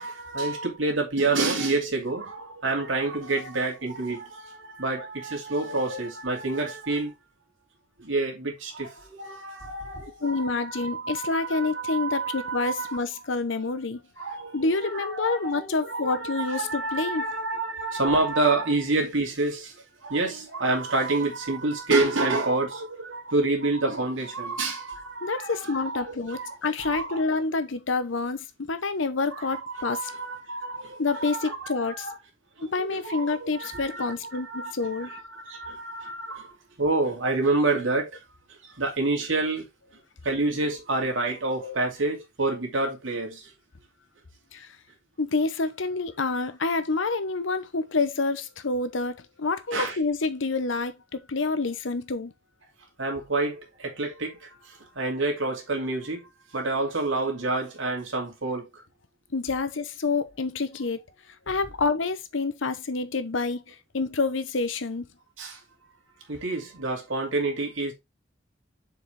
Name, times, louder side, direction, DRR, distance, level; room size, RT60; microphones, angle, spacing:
voice 1, 0.0-7.1 8.0-13.0 14.2-19.8 20.0-27.2 29.3-32.1 32.6-38.2 38.7-39.7 40.2-43.5 49.7-50.0 53.0-58.8 65.4-65.6 66.3-67.9, right 3 dB, 85° right, 2.6 m, -28 dB
voice 2, 5.7-6.0 10.2-14.0 14.5-17.3 25.2-30.1 31.0-32.1 32.6-35.2 41.6-41.8 44.5-44.7 45.2-52.3 59.3-61.0 61.5-65.1, left 3 dB, 80° left, 0.9 m, -28 dB
7.0 x 4.8 x 3.3 m
head